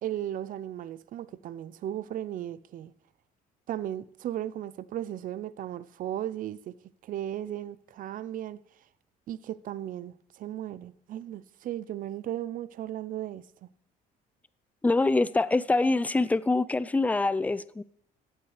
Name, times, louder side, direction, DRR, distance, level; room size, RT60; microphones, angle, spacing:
voice 1, 0.0-2.9 3.7-6.7 7.0-8.6 9.3-13.4, right 12 dB, 55° right, 0.5 m, -36 dB
voice 2, 14.8-17.8, left 2 dB, 10° left, 0.3 m, -25 dB
15.5 x 8.7 x 3.2 m
cardioid pair, 110°, 17 cm